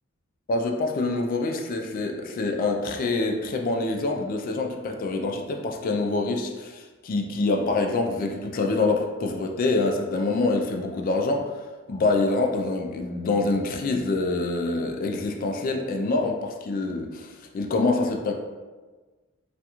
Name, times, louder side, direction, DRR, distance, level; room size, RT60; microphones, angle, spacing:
voice 1, 0.5-11.4 11.9-18.3, left 3 dB, 45° left, 3 dB, 0.3 m, -26 dB
2.8 x 2.5 x 2.3 m, 1.3 s
head